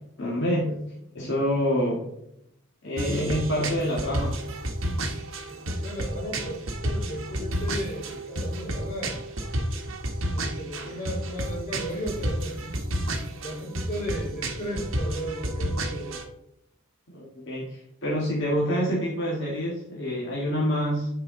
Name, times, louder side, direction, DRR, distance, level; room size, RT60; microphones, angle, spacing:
voice 1, 0.2-0.7 1.1-2.1 2.8-4.4 10.8-11.0 17.1-21.2, equal, 60° left, -5 dB, 1.6 m, -27 dB
sound 1, 3.0-16.2, right 1 dB, 75° right, 1.2 m, -31 dB
voice 2, 5.5-9.2 10.3-12.8 13.1-16.1, equal, 35° left, -3 dB, 3.2 m, -35 dB
10.5 x 4.8 x 3.8 m, 0.79 s
head